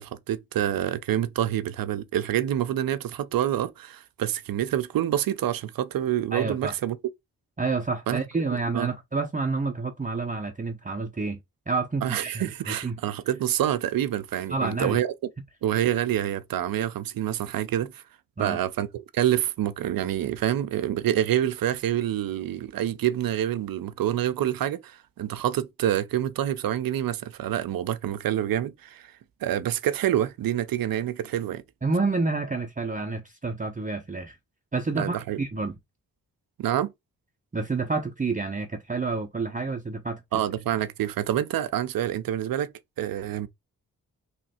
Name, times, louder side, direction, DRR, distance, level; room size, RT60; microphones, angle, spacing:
voice 1, 0.0-7.0 8.1-8.2 8.7-8.9 12.0-15.1 15.6-18.0 18.4-29.1 29.4-31.6 35.0-35.4 36.6-36.9 40.3-42.7 43.0-43.5, right 11 dB, 65° right, 0.6 m, -27 dB
voice 2, 6.3-6.8 7.6-11.4 11.7-13.0 14.5-15.0 18.4-18.6 31.8-34.4 34.7-35.8 37.5-40.2, right 3 dB, 20° right, 0.7 m, -29 dB
3.1 x 2.4 x 4.2 m
supercardioid pair, 40°, 38 cm